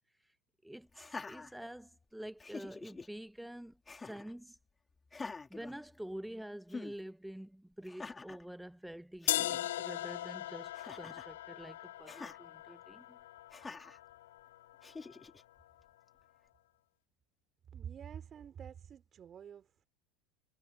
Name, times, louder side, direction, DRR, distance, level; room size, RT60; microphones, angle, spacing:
voice 1, 0.6-4.6 5.5-13.2, right 1 dB, 5° right, 1.1 m, -47 dB
Laughter, 0.9-2.0 2.4-3.1 3.9-4.3 5.1-6.3 6.7-7.0 7.8-8.4 8.9-9.0 9.2-9.6 10.7-11.3 12.1-12.4 13.5-14.0 14.8-15.4, left 4 dB, 15° left, 3.5 m, -46 dB
sound 1, 9.3-15.2, left 14 dB, 75° left, 0.4 m, -39 dB
voice 2, 17.7-19.9, right 8 dB, 35° right, 4.7 m, -48 dB
hypercardioid pair, 85°, 0 cm